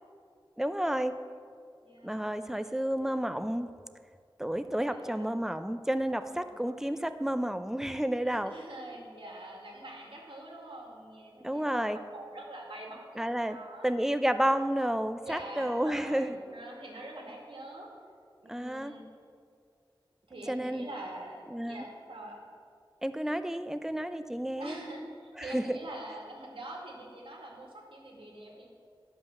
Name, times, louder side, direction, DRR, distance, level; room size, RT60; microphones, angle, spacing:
voice 1, 0.6-1.1 2.0-3.7 4.4-8.5 11.4-12.0 13.2-13.6 13.8-16.4 18.5-18.9 20.5-20.9 21.5-21.8 23.0-24.8 25.4-25.8, right 1 dB, 5° right, 10 dB, 0.6 m, -31 dB
voice 2, 1.8-2.4 4.8-5.4 6.1-7.0 8.1-13.9 15.2-17.9 18.4-19.1 20.3-22.5 24.6-28.7, right 1 dB, 90° right, -2 dB, 2.2 m, -45 dB
11.0 x 5.5 x 7.0 m, 2.2 s
wide cardioid pair, 50°, 9 cm